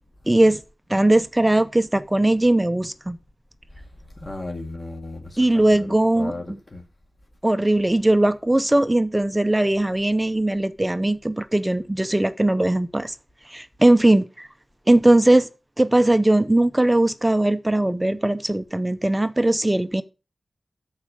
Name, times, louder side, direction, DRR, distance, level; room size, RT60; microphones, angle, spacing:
voice 1, 0.3-0.6 0.9-3.2 5.4-6.6 7.4-13.1 13.5-14.5 14.9-15.5 15.8-20.0, right 1 dB, 15° right, 0.6 m, -19 dB
voice 2, 4.2-6.8, left 2 dB, 40° left, 2.2 m, -35 dB
13.0 x 4.8 x 5.0 m
wide cardioid pair, 75°, 0 cm